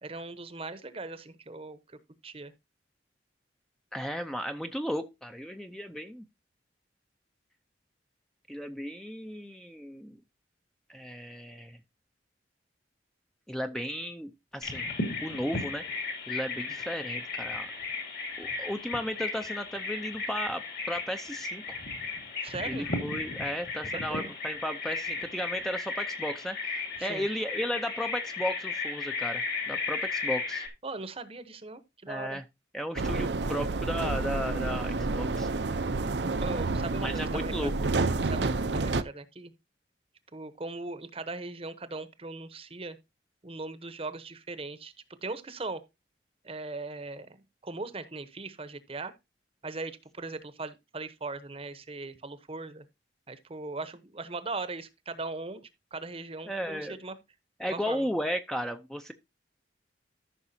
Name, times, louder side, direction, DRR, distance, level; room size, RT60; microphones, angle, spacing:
voice 1, 0.0-2.0 2.2-2.5 22.4-22.9 23.9-24.3 27.0-27.2 30.8-32.4 36.4-37.7 38.2-39.5 40.3-43.0 43.4-44.9 45.2-45.8 46.4-47.4 47.6-49.1 49.6-52.8 53.3-55.6 55.9-57.1 57.7-58.1, right 3 dB, 35° right, 0.9 m, -39 dB
voice 2, 3.9-6.3 8.5-10.2 10.9-11.8 13.5-14.9 15.2-15.8 16.3-17.7 18.4-21.6 22.6-30.6 32.1-32.4 32.7-35.9 37.0-37.7 56.5-57.0 57.6-59.1, equal, 5° left, 0.5 m, -35 dB
Bird vocalization bird call bird song, 14.6-30.7, left 3 dB, 55° left, 2.7 m, -35 dB
sound 1, 33.0-39.0, right 3 dB, 70° right, 0.7 m, -29 dB
14.0 x 5.9 x 2.7 m
head